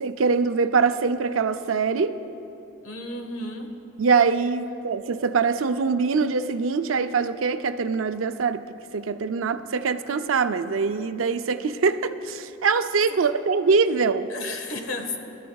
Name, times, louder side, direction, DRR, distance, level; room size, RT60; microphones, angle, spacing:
voice 1, 0.0-2.2 4.0-8.7 8.9-14.3, right 5 dB, 85° right, 10 dB, 0.5 m, -23 dB
voice 2, 2.8-3.7 13.1-13.2 14.3-15.2, left 2 dB, 80° left, 3 dB, 1.4 m, -33 dB
23.0 x 13.0 x 2.3 m, 2.9 s
head